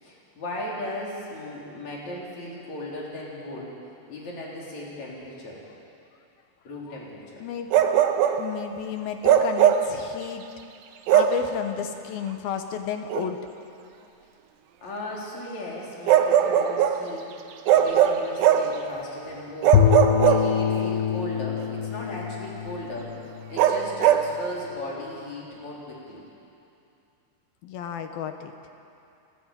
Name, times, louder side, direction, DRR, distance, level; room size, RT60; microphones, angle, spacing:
voice 1, 0.0-3.8 4.1-5.6 6.7-7.4 14.8-17.3 17.7-26.3, left 1 dB, 40° left, -4 dB, 5.2 m, -37 dB
voice 2, 7.4-7.9 8.4-10.5 11.1-13.4 27.6-28.5, left 7 dB, 70° left, 6 dB, 2.5 m, -32 dB
Bark, 7.7-8.5 9.2-9.9 11.1-11.4 13.1-13.3 16.1-17.0 17.7-18.8 19.6-20.9 23.6-24.3, right 9 dB, 80° right, 3.1 m, -19 dB
Bowed string instrument, 19.7-24.0, left 9 dB, 85° left, 2.9 m, -24 dB
30.0 x 13.0 x 9.2 m, 2.7 s
omnidirectional pair, 4.9 m